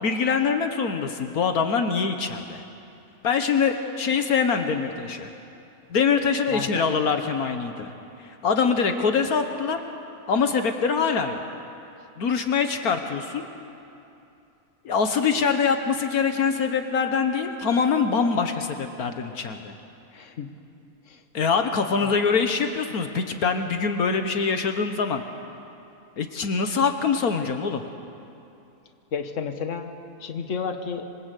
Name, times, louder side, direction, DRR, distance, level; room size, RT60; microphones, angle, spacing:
voice 1, 0.0-2.6 3.2-5.3 5.9-7.9 8.2-9.8 10.3-11.4 12.2-13.4 14.8-19.7 21.3-25.2 26.2-27.8, left 5 dB, 75° left, 6 dB, 1.7 m, -24 dB
voice 2, 6.5-6.8 20.1-20.5 21.1-21.2 22.0-22.2 29.1-31.1, left 6 dB, 55° left, 6 dB, 1.7 m, -32 dB
27.0 x 23.5 x 8.3 m, 2.7 s
omnidirectional pair, 1.6 m